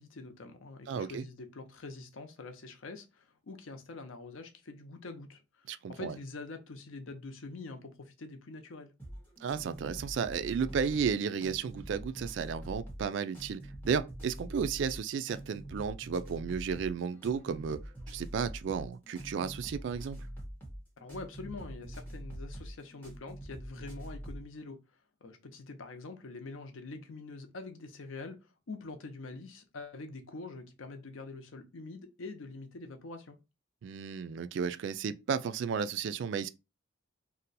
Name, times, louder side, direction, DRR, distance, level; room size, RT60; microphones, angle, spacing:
voice 1, 0.0-5.4 5.9-8.9 21.0-24.8 25.2-28.4 28.7-33.4, left 3 dB, 80° left, 0.6 m, -45 dB
voice 2, 0.9-1.3 5.7-6.2 9.4-13.6 13.8-17.8 18.1-20.2 33.8-36.5, right 6 dB, 65° right, 0.3 m, -33 dB
sound 1, 9.0-24.5, right 1 dB, 10° left, 1.2 m, -45 dB
2.7 x 2.2 x 3.9 m
head